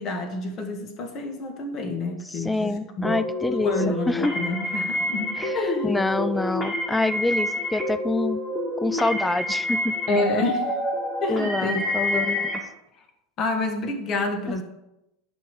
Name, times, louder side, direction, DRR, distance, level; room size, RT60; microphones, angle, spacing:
voice 1, 0.0-3.1 3.5-5.9 10.1-10.8 11.2-11.8 12.1-12.3 13.4-14.6, left 2 dB, 40° left, 5 dB, 1.6 m, -28 dB
voice 2, 2.3-4.3 5.4-5.5 5.8-8.4 8.8-10.0 11.3-12.5 14.5-14.6, left 2 dB, 10° left, 15 dB, 0.4 m, -26 dB
sound 1, 3.0-12.6, left 1 dB, 25° left, 2.8 m, -28 dB
10.5 x 3.8 x 7.3 m, 0.89 s
figure-of-eight pair, 80°, 0 cm